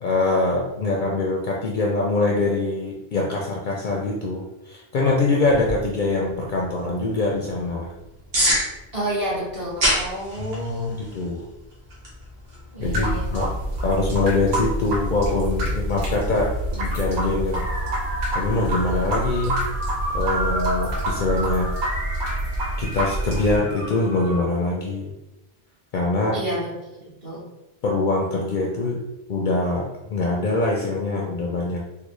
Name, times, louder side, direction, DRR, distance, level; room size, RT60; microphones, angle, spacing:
voice 1, 0.0-7.9 10.4-11.4 12.8-13.6 13.8-17.7 18.3-19.6 20.1-21.7 22.8-25.1 25.9-26.4 27.8-29.0 29.3-31.8, left 2 dB, 60° left, -2 dB, 0.6 m, -24 dB
sound 1, 5.4-16.0, equal, 70° right, 1.3 m, -31 dB
voice 2, 8.9-11.0 12.7-13.5 26.3-27.5, equal, 35° right, -9 dB, 1.4 m, -30 dB
sound 2, 12.8-23.6, right 1 dB, 90° right, 1.1 m, -27 dB
sound 3, 17.5-24.4, right 1 dB, 55° right, 1.3 m, -32 dB
3.8 x 2.1 x 3.1 m, 0.92 s
omnidirectional pair, 1.1 m